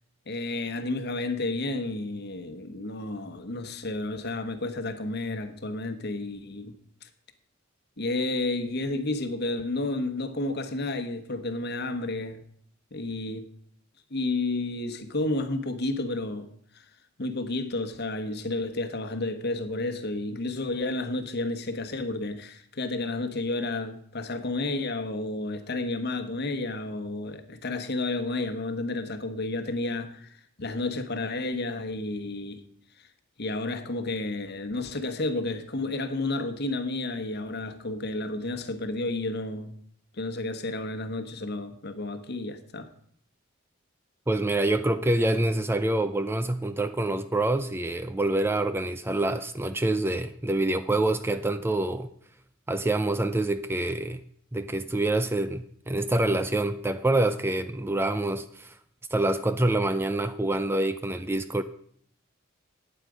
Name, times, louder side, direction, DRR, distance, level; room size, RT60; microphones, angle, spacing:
voice 1, 0.3-6.7 7.0-7.1 8.0-12.4 12.9-13.5 14.1-16.5 16.7-16.8 17.2-32.6 33.0-33.1 33.4-39.7 40.1-42.9, left 2 dB, 50° left, 1.1 m, -31 dB
voice 2, 44.3-52.1 52.7-54.2 54.5-58.7 59.1-61.6, right 2 dB, 10° right, 0.4 m, -26 dB
12.0 x 9.1 x 5.0 m
head